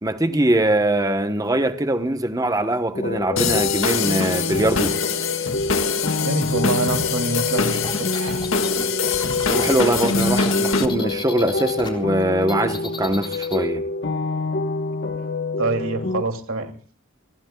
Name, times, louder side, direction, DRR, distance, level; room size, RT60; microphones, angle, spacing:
voice 1, 0.0-4.9 9.5-13.8, right 1 dB, 15° right, 1.0 m, -22 dB
sound 1, 2.9-16.2, left 2 dB, 55° left, 1.1 m, -26 dB
sound 2, 3.4-10.9, left 5 dB, 75° left, 1.9 m, -24 dB
voice 2, 6.2-8.5 15.6-16.8, right 3 dB, 90° right, 2.7 m, -26 dB
sound 3, 7.7-11.9 12.2-13.6, left 3 dB, 25° left, 3.6 m, -35 dB
30.0 x 20.5 x 2.3 m
head